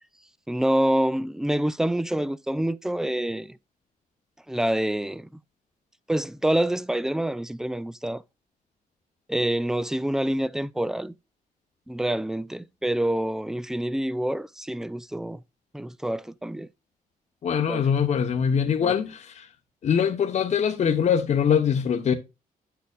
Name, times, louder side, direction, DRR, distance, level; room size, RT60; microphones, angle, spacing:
voice 1, 0.5-3.6 4.5-5.3 6.1-8.2 9.3-11.1 11.9-15.4 15.7-16.7 17.6-17.9 18.8-19.0, right 1 dB, 5° right, 0.3 m, -27 dB
voice 2, 17.4-19.4 19.8-22.1, left 7 dB, 50° left, 0.9 m, -23 dB
9.5 x 6.6 x 2.3 m
cardioid pair, 120°, 15 cm